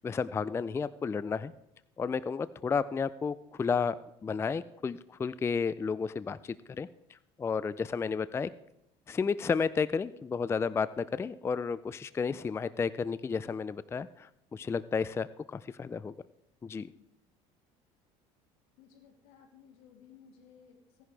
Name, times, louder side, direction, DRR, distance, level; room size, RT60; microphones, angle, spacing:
voice 1, 0.0-1.5 2.0-8.5 9.1-16.1 16.6-16.9, left 5 dB, 15° left, 16 dB, 0.4 m, -32 dB
voice 2, 18.8-21.0, left 7 dB, 85° left, 2 dB, 2.8 m, -58 dB
16.5 x 10.5 x 3.3 m, 0.82 s
supercardioid pair, 105°, 15 cm